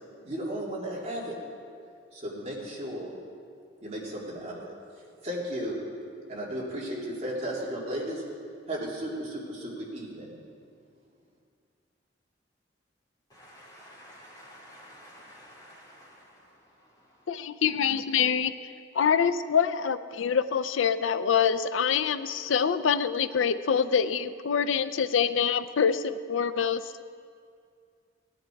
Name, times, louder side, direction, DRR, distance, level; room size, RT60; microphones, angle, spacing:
voice 1, 0.2-1.3 2.1-3.1 3.8-4.7 5.2-5.8 6.3-8.2 8.7-10.3, right 1 dB, 35° right, -5 dB, 3.0 m, -34 dB
voice 2, 13.3-17.3, equal, 20° left, -8 dB, 4.3 m, -52 dB
voice 3, 17.3-27.0, left 7 dB, 90° left, 12 dB, 0.5 m, -26 dB
18.0 x 10.5 x 4.6 m, 2.3 s
head